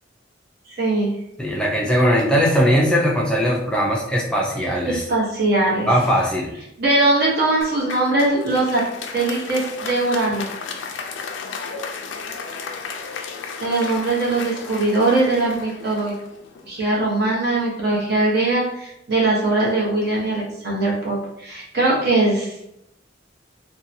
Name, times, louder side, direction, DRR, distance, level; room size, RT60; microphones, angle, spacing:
voice 1, 0.7-1.1 5.1-6.0 6.8-8.8 9.1-10.5 13.6-16.1 16.7-22.5, right 2 dB, 60° right, -4 dB, 1.0 m, -21 dB
voice 2, 1.4-5.0 5.9-6.5, equal, 5° left, -3 dB, 0.3 m, -19 dB
Applause, 7.6-16.9, left 5 dB, 85° left, 0.4 m, -34 dB
2.7 x 2.2 x 2.6 m, 0.80 s
head